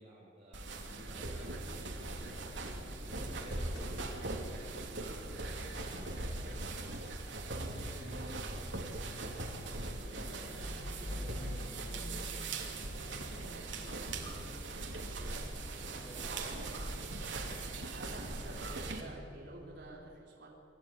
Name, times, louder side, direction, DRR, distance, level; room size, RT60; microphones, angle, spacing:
voice 1, 0.0-17.6, right 1 dB, 35° right, -9 dB, 7.4 m, -53 dB
sound 1, 0.5-19.0, right 2 dB, 80° right, 2.8 m, -40 dB
Motor vehicle (road) / Engine starting / Idling, 2.8-4.6 4.9-19.9, equal, 65° left, 6.3 m, -50 dB
voice 2, 17.9-20.5, right 2 dB, 60° right, -3 dB, 3.6 m, -50 dB
26.0 x 13.0 x 9.0 m, 2.7 s
head